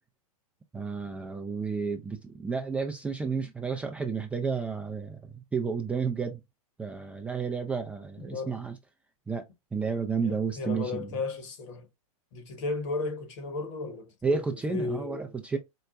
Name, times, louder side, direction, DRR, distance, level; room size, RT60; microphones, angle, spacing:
voice 1, 0.7-6.4 6.8-8.8 9.3-9.5 9.7-11.1 14.2-15.6, right 5 dB, 5° right, 0.3 m, -31 dB
voice 2, 8.2-8.6 10.2-11.9 12.3-14.4 14.7-15.3, left 3 dB, 55° left, 1.2 m, -35 dB
4.6 x 2.1 x 2.4 m
hypercardioid pair, 115°, 19 cm